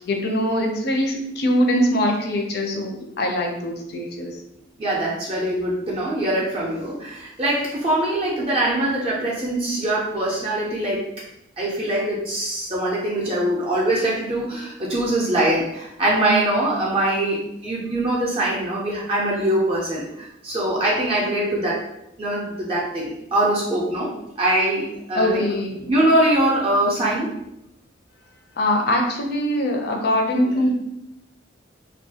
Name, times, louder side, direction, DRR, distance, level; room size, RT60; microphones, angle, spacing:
voice 1, 0.0-4.3 25.2-25.9 28.6-30.7, left 1 dB, 55° left, 3 dB, 0.4 m, -22 dB
voice 2, 4.8-11.1 11.6-21.8 22.2-24.1 24.4-25.4 25.9-27.3 30.4-30.7, right 1 dB, 30° right, -5 dB, 0.4 m, -23 dB
2.3 x 2.2 x 2.7 m, 0.82 s
head